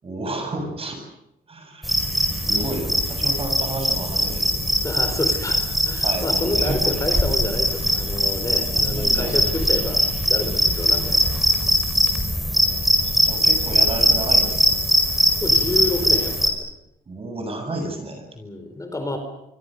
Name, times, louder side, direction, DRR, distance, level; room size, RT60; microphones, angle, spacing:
voice 1, 0.0-1.0 1.5-4.7 6.0-6.9 8.7-9.3 12.6-12.7 13.2-14.8 17.1-18.2, right 2 dB, 35° right, 5 dB, 7.6 m, -31 dB
sound 1, 1.8-16.5, equal, ahead, 5.0 m, -21 dB
voice 2, 4.8-11.2 15.1-16.5 18.4-19.2, left 2 dB, 20° left, 6 dB, 4.3 m, -29 dB
26.5 x 24.5 x 6.6 m, 0.82 s
cardioid pair, 105°, 16 cm